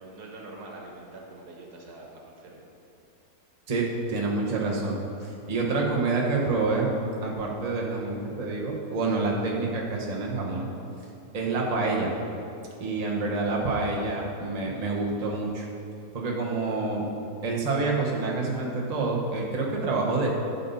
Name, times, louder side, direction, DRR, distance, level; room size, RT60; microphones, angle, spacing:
voice 1, 0.0-2.7 13.1-13.6 19.7-19.8, right 2 dB, 75° right, -1 dB, 1.8 m, -45 dB
voice 2, 3.7-6.9 7.2-10.7 11.3-12.1 12.8-15.7 16.1-17.1 17.4-20.3, right 3 dB, 30° right, -3 dB, 1.0 m, -27 dB
12.0 x 5.5 x 4.1 m, 2.7 s
omnidirectional pair, 1.7 m